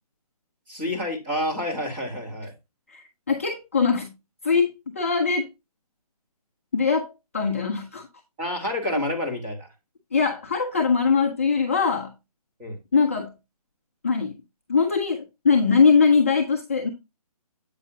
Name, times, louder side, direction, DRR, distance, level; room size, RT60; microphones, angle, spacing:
voice 1, 0.7-2.5 8.4-9.7 12.6-12.8, left 1 dB, 10° right, 1.4 m, -29 dB
voice 2, 2.9-4.1 4.4-4.7 5.0-5.5 6.7-8.1 8.9-9.0 10.1-12.1 12.9-13.3 14.0-14.3 14.7-16.9, left 5 dB, 20° left, 0.5 m, -21 dB
8.2 x 6.2 x 2.7 m
hypercardioid pair, 175°, 20 cm